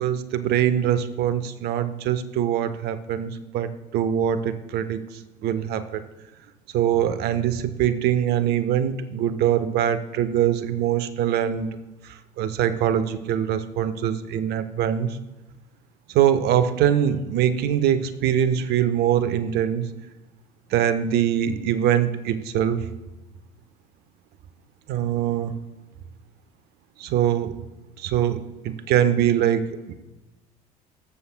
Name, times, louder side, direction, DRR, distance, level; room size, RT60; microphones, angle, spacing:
voice 1, 0.0-5.1 5.4-6.0 6.7-11.8 12.4-15.2 16.1-19.9 20.7-22.9 24.9-25.6 27.0-27.6 28.0-29.9, right 10 dB, 55° right, 12 dB, 0.8 m, -23 dB
19.0 x 7.1 x 2.2 m, 1.1 s
hypercardioid pair, 65°, 20 cm